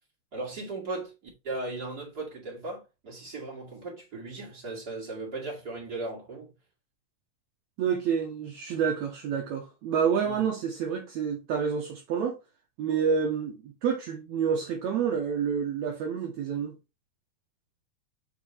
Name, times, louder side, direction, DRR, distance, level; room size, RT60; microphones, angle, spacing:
voice 1, 0.3-1.1 1.4-6.5 10.2-10.4, right 2 dB, 30° right, 2.4 m, -37 dB
voice 2, 7.8-12.4 12.8-16.8, right 7 dB, 70° right, 2.0 m, -28 dB
7.0 x 4.4 x 3.2 m
omnidirectional pair, 3.8 m